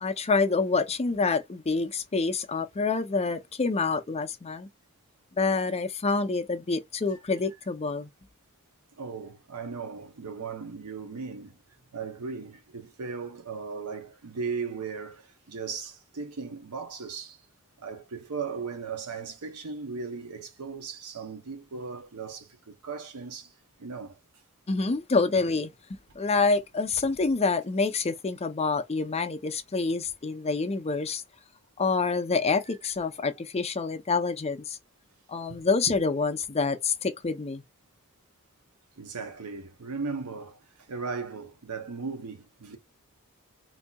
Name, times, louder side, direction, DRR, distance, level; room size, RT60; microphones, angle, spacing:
voice 1, 0.0-4.7 5.3-8.1 24.7-25.7 26.2-31.2 31.8-34.8 35.3-37.6, left 4 dB, 30° left, 0.5 m, -27 dB
voice 2, 9.0-11.6 11.9-17.4 17.8-23.5 23.8-24.2 35.5-35.9 39.0-40.6 40.9-42.8, right 5 dB, 90° right, 0.8 m, -37 dB
4.0 x 2.7 x 2.3 m
head